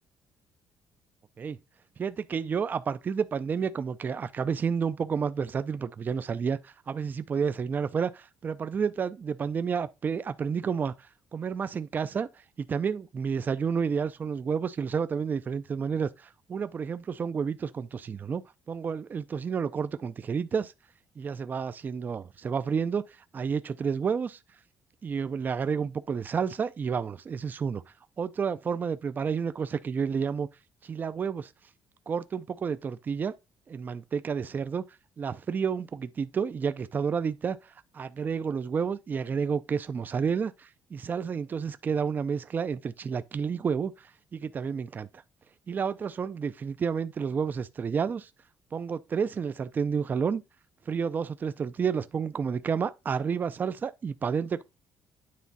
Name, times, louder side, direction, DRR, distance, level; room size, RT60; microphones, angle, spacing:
voice 1, 2.0-10.9 11.3-12.3 12.6-18.4 18.7-20.7 21.2-23.0 23.3-24.4 25.0-27.8 28.2-30.5 30.8-31.5 32.1-33.3 33.7-34.8 35.2-45.1 45.7-48.3 48.7-50.4 50.9-54.6, right 6 dB, 25° right, 0.4 m, -30 dB
9.4 x 3.5 x 4.1 m
cardioid pair, 160°, 7 cm